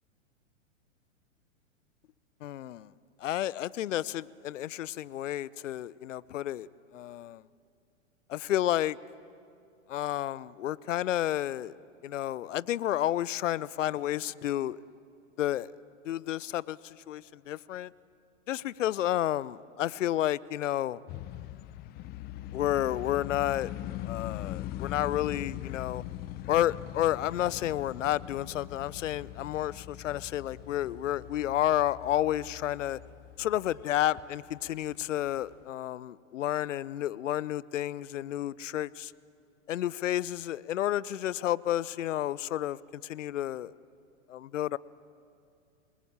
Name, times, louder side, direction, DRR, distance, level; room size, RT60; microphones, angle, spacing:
voice 1, 2.4-2.9 3.2-7.4 8.3-9.0 9.9-11.8 12.0-14.8 15.4-15.7 16.0-17.9 18.5-21.0 22.5-23.7 24.0-26.0 26.5-33.0 33.4-39.1 39.7-43.7 44.3-44.8, left 12 dB, 70° left, 21 dB, 0.7 m, -31 dB
sound 1, 21.1-35.6, left 13 dB, 25° left, 0.7 m, -41 dB
27.5 x 21.5 x 8.9 m, 2.5 s
hypercardioid pair, 115°, 39 cm